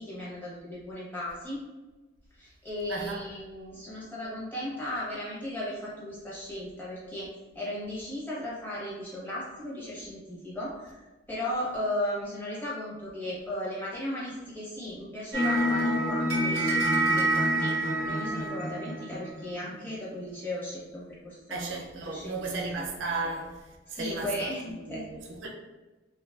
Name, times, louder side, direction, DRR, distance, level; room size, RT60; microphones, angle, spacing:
voice 1, 0.0-1.6 2.4-7.3 7.5-23.0 23.9-25.1 25.4-25.5, left 1 dB, 10° left, 0.8 m, -36 dB
voice 2, 2.9-3.2 21.5-23.5 23.9-24.3 24.9-25.5, right 3 dB, 65° right, 0.4 m, -34 dB
sound 1, 15.3-19.6, right 1 dB, 80° left, 1.4 m, -27 dB
2.6 x 2.3 x 2.2 m
head